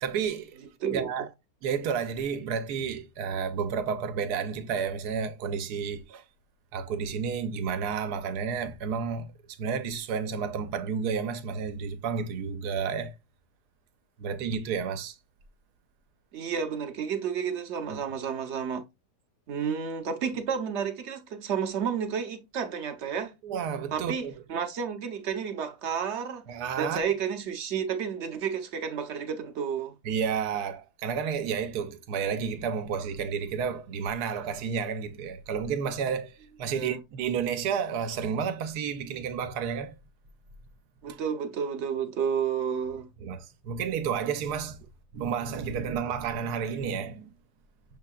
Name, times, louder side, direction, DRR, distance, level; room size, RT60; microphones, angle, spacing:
voice 1, 0.0-0.6 0.9-1.3 1.6-6.2 6.7-13.2 14.2-15.2 17.9-18.0 23.4-24.3 26.5-27.0 30.0-40.0 41.1-41.2 43.2-44.8 45.1-47.3, right 6 dB, 80° right, 1.2 m, -31 dB
voice 2, 16.3-18.8 19.5-23.3 23.9-26.4 26.8-29.9 36.7-37.0 41.0-43.1, right 7 dB, 55° right, 0.8 m, -31 dB
6.5 x 3.5 x 2.3 m
omnidirectional pair, 1.7 m